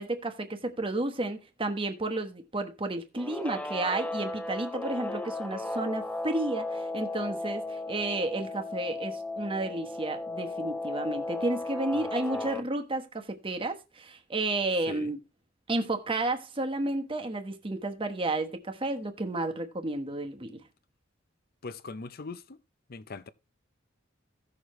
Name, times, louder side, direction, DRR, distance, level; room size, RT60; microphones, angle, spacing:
voice 1, 0.0-15.2 15.7-20.6, right 2 dB, 25° right, 1.1 m, -32 dB
Guitar, 3.2-12.6, left 2 dB, 5° left, 0.4 m, -35 dB
voice 2, 12.3-12.7 14.9-15.1 21.6-22.6 22.9-23.3, left 3 dB, 50° left, 0.6 m, -42 dB
16.0 x 6.6 x 3.1 m
head